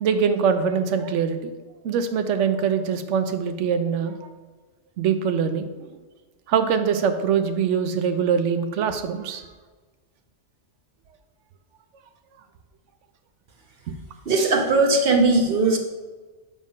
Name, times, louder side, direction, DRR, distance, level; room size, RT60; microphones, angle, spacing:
voice 1, 0.0-1.5 1.8-4.3 5.0-5.9 6.5-9.4, right 6 dB, 90° right, 8 dB, 1.0 m, -23 dB
voice 2, 14.3-15.8, right 3 dB, 55° right, 2 dB, 1.0 m, -19 dB
7.3 x 3.6 x 5.2 m, 1.3 s
omnidirectional pair, 1.2 m